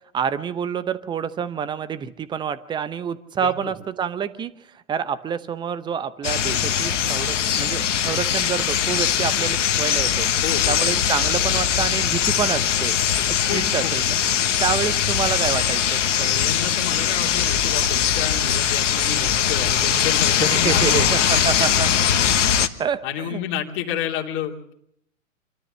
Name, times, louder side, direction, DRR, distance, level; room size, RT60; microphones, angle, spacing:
voice 1, 0.1-4.5 4.9-10.3 10.7-12.9 13.3-14.2 14.6-16.3 20.4-21.9 22.8-23.4, right 7 dB, 10° right, 14 dB, 0.8 m, -27 dB
voice 2, 3.4-3.7 10.4-11.0 13.5-13.9 16.2-21.1 22.7-24.7, left 8 dB, 30° left, 1 dB, 2.8 m, -30 dB
sound 1, 6.2-22.7, left 9 dB, 60° left, 1.3 m, -21 dB
26.5 x 13.0 x 7.5 m, 0.74 s
figure-of-eight pair, 110°, 41 cm